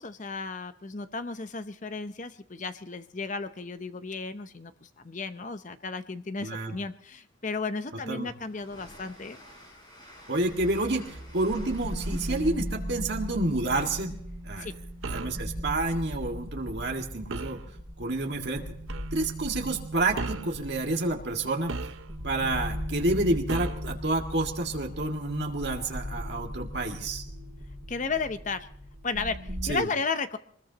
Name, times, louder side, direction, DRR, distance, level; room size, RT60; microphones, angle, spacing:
voice 1, 0.0-9.4 12.3-12.4 14.6-14.7 27.9-28.7 29.0-30.4, left 4 dB, 40° left, 11 dB, 0.7 m, -34 dB
voice 2, 6.4-6.8 8.1-8.3 10.3-14.1 14.4-14.7 15.1-17.6 18.0-18.6 19.1-21.8 22.2-27.2 29.6-29.9, right 2 dB, 55° right, 1 dB, 1.9 m, -29 dB
Train, 7.1-14.8, equal, 20° left, 4.8 m, -53 dB
sound 1, 10.3-29.7, equal, 35° right, 6.4 m, -38 dB
sound 2, 15.0-15.4 17.3-17.6 18.9-19.1 20.1-20.6 21.7-22.3 23.5-23.9, right 3 dB, 80° right, 0.8 m, -35 dB
23.5 x 20.0 x 2.9 m, 0.64 s
head